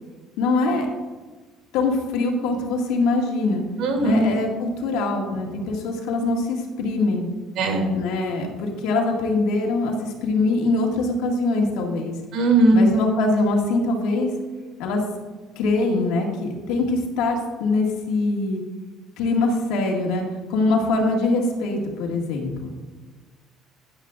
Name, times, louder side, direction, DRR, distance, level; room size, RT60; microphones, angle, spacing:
voice 1, 0.4-0.9 1.7-3.6 4.0-7.3 7.9-12.1 12.7-14.3 14.8-15.0 15.6-18.6 19.2-20.2 20.5-22.7, left 3 dB, 85° left, 1 dB, 1.9 m, -23 dB
voice 2, 3.8-4.3 7.6-7.9 12.3-12.9, right 1 dB, 70° right, 3 dB, 2.5 m, -18 dB
13.0 x 10.5 x 2.4 m, 1.3 s
cardioid pair, 100°, 0 cm